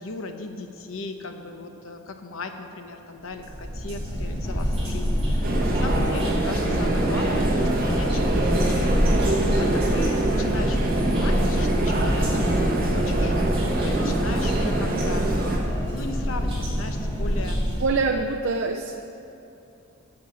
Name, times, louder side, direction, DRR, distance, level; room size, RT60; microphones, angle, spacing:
voice 1, 0.0-13.4 13.8-15.2 15.9-17.6, left 3 dB, 85° left, 6 dB, 0.9 m, -37 dB
sound 1, 3.3-17.8, equal, 30° right, 2.6 m, -26 dB
sound 2, 4.4-17.6, left 1 dB, 15° left, 0.5 m, -39 dB
sound 3, 5.4-15.6, right 2 dB, 45° right, 1.4 m, -25 dB
voice 2, 17.8-19.0, right 4 dB, 70° right, 2 dB, 0.5 m, -25 dB
9.5 x 6.8 x 7.7 m, 2.8 s
head